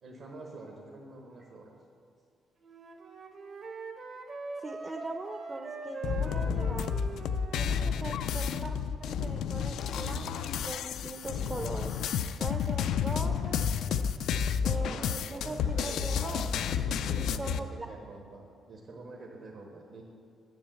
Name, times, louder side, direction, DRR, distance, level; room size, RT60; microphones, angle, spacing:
voice 1, 0.0-1.7 14.7-16.5 16.8-20.0, right 2 dB, 65° right, 0 dB, 1.1 m, -46 dB
Wind instrument woodwind instrument, 2.6-7.9, right 4 dB, 50° right, 0.8 m, -42 dB
voice 2, 4.6-6.9 7.5-12.0 12.4-13.6 14.6-16.6 17.1-17.9, right 2 dB, 25° right, 4 dB, 0.5 m, -41 dB
sound 1, 6.0-17.6, left 7 dB, 80° left, 0.3 m, -31 dB
7.2 x 6.2 x 7.6 m, 2.3 s
cardioid pair, 90°, 0 cm